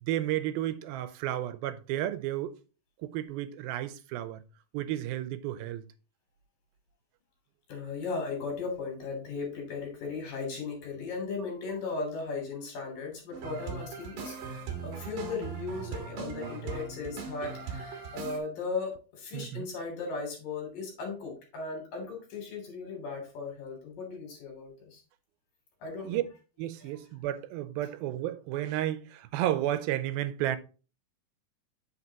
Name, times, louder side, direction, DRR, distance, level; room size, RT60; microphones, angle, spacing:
voice 1, 0.0-2.6 3.0-4.4 4.7-5.8 19.3-19.7 26.1-26.2 26.6-30.6, right 13 dB, 90° right, 2.5 m, -32 dB
voice 2, 7.7-25.0 25.8-26.3 26.8-27.0, left 4 dB, 65° left, 4.7 m, -37 dB
sound 1, 13.3-18.4, right 6 dB, 65° right, 3.2 m, -39 dB
8.2 x 7.4 x 2.9 m
omnidirectional pair, 4.2 m